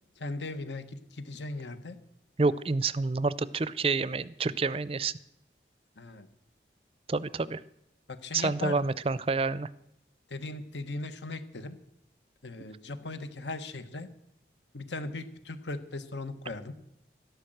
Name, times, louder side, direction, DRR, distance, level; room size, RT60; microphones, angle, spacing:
voice 1, 0.2-2.0 6.0-6.3 8.1-8.9 10.3-11.8 12.4-14.1 14.7-16.8, left 2 dB, 85° left, 10 dB, 1.4 m, -38 dB
voice 2, 2.4-5.2 7.1-7.6 8.3-9.7, right 4 dB, 30° right, 18 dB, 0.4 m, -28 dB
13.0 x 11.5 x 7.9 m, 0.84 s
head